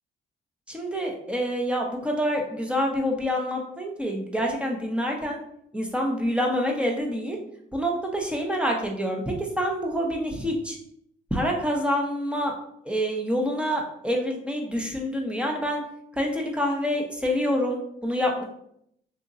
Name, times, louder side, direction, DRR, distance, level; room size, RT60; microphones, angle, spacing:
voice 1, 0.7-5.4 5.7-7.4 7.7-10.8 11.3-12.5 12.9-15.8 16.1-18.4, equal, 5° right, 0 dB, 0.8 m, -27 dB
3.7 x 2.8 x 2.6 m, 0.72 s
cardioid pair, 90°, 20 cm